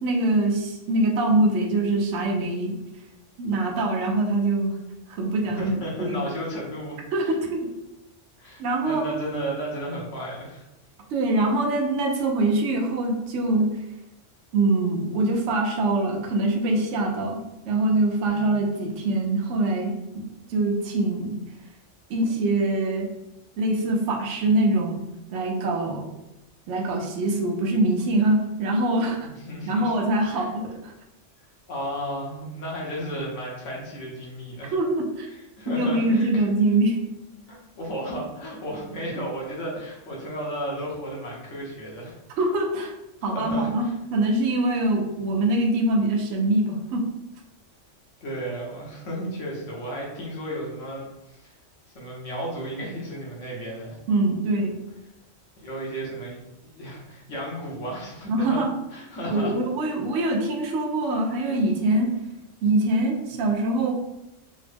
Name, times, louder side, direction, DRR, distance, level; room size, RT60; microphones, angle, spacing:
voice 1, 0.0-2.8 3.4-4.8 5.1-5.7 6.0-6.2 7.1-7.7 8.6-9.1 11.1-13.7 14.5-20.2 20.5-21.4 22.1-23.1 23.6-25.0 25.3-26.1 26.7-29.3 29.7-30.9 34.7-35.3 35.7-37.0 42.4-42.9 43.2-43.9 44.1-47.0 54.1-54.7 58.3-58.7 59.3-62.1 62.6-63.9, right 2 dB, 75° right, 1 dB, 0.9 m, -23 dB
voice 2, 5.5-7.3 8.4-10.6 18.3-18.5 29.2-29.9 30.3-30.5 31.7-34.7 35.3-36.4 37.5-42.1 43.2-43.9 48.2-51.5 51.9-54.0 55.6-58.6 58.9-59.5, right 1 dB, 75° left, -3 dB, 1.3 m, -33 dB
3.7 x 2.1 x 3.3 m, 0.92 s
omnidirectional pair, 1.3 m